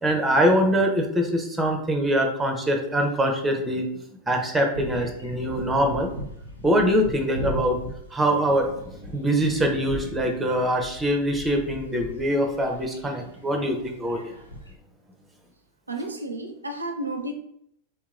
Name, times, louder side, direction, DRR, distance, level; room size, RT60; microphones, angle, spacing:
voice 1, 0.0-3.8 4.3-6.1 6.6-7.8 8.1-14.3, equal, 10° right, 3 dB, 0.6 m, -23 dB
sound 1, 4.7-14.7, equal, 80° left, 0.8 m, -39 dB
voice 2, 15.9-17.3, right 1 dB, 80° right, 5 dB, 0.4 m, -32 dB
3.4 x 2.9 x 2.4 m, 0.73 s
figure-of-eight pair, 90°, 0 cm